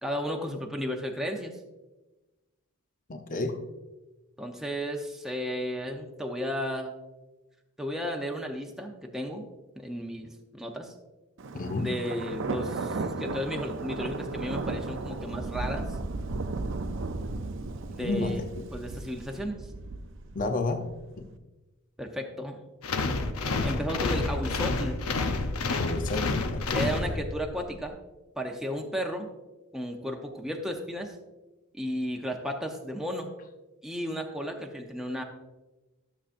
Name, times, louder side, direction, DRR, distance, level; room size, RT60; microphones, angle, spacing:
voice 1, 0.0-1.5 4.4-6.9 7.8-9.5 9.8-10.9 11.8-15.9 17.9-18.4 18.7-19.6 22.0-22.6 23.6-25.0 26.7-28.0 28.4-29.3 29.7-31.1 31.7-33.3 33.8-35.2, equal, ahead, 1 dB, 0.7 m, -33 dB
voice 2, 3.1-3.6 11.5-11.9 18.0-18.4 20.3-20.9 21.2-21.3 25.7-26.9, left 3 dB, 40° left, 5 dB, 0.6 m, -31 dB
Thunder, 11.4-21.2, right 3 dB, 60° right, 0.5 m, -35 dB
sound 1, 22.8-27.6, left 3 dB, 85° left, 0.8 m, -29 dB
12.5 x 7.0 x 2.6 m, 1.1 s
head